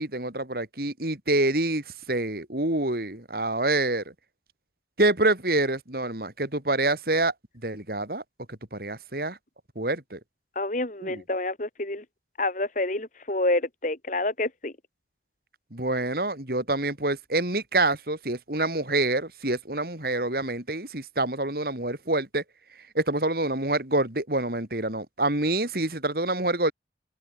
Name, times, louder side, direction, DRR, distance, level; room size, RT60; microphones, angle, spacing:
voice 1, 0.0-4.0 5.0-7.3 7.6-8.2 8.5-9.4 9.8-10.2 11.0-11.2 15.7-22.4 23.0-26.7, right 2 dB, 55° right, 3.6 m, -26 dB
voice 2, 10.6-12.0 12.4-14.7, left 2 dB, 45° left, 2.4 m, -28 dB
head